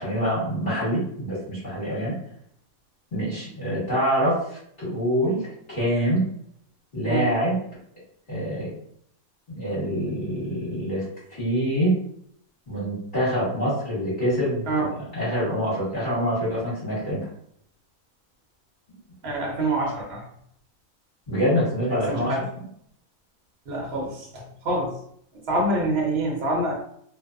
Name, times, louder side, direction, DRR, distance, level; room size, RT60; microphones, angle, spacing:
voice 1, 0.0-2.1 3.1-6.3 6.9-7.6 8.3-8.7 9.5-11.0 11.4-12.0 12.7-17.3 21.3-22.3, equal, 35° left, -11 dB, 1.2 m, -25 dB
voice 2, 19.2-20.2 22.1-22.4 23.7-24.9 25.5-26.8, right 2 dB, 50° right, -2 dB, 1.0 m, -26 dB
2.6 x 2.2 x 2.3 m, 0.68 s
omnidirectional pair, 1.5 m